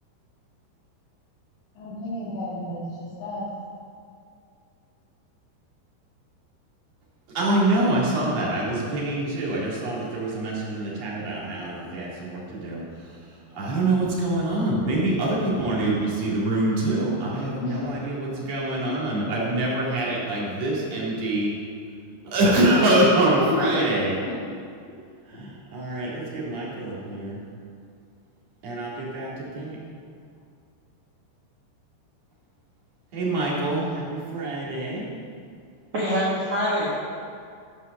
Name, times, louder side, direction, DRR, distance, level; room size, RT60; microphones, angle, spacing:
voice 1, 1.8-3.4 17.6-17.8 23.4-23.7, left 3 dB, 75° left, -10 dB, 4.0 m, -31 dB
voice 2, 7.3-13.2 13.5-21.5 22.2-24.2 25.3-27.4 28.6-29.8 33.1-35.1, right 1 dB, 45° right, -6 dB, 2.8 m, -25 dB
voice 3, 35.9-36.9, equal, 85° right, -8 dB, 1.3 m, -24 dB
11.5 x 5.5 x 6.6 m, 2.3 s
omnidirectional pair, 5.4 m